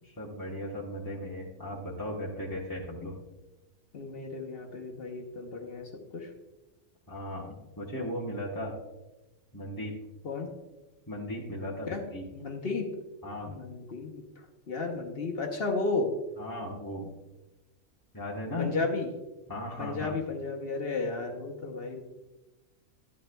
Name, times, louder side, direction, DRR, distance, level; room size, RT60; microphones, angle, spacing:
voice 1, 0.0-3.2 7.1-8.8 9.5-10.0 11.1-12.2 13.2-13.6 16.4-17.1 18.1-18.7 19.5-20.1, left 1 dB, 15° left, -5 dB, 0.9 m, -37 dB
voice 2, 3.9-6.3 10.2-10.5 11.9-12.0 12.3-12.9 13.5-14.2 14.7-16.1 18.6-19.1 19.8-22.0, left 3 dB, 50° left, 2 dB, 1.0 m, -33 dB
11.5 x 9.1 x 2.2 m, 1.0 s
omnidirectional pair, 1.5 m